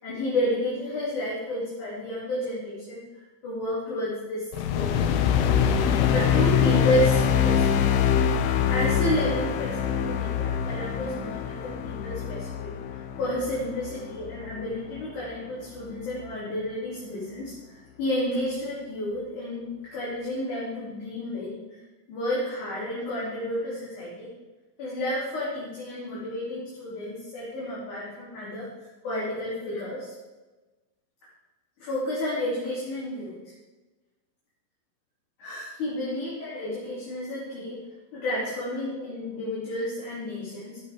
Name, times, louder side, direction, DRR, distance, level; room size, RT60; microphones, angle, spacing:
voice 1, 0.0-5.0 5.6-8.1 8.7-21.8 22.1-24.3 24.8-30.1 31.8-33.5 35.4-37.8 38.1-40.8, left 1 dB, 45° left, -9 dB, 4.2 m, -31 dB
sound 1, 4.5-15.0, left 8 dB, 85° left, 2.2 m, -24 dB
13.0 x 8.2 x 5.0 m, 1.2 s
omnidirectional pair, 5.4 m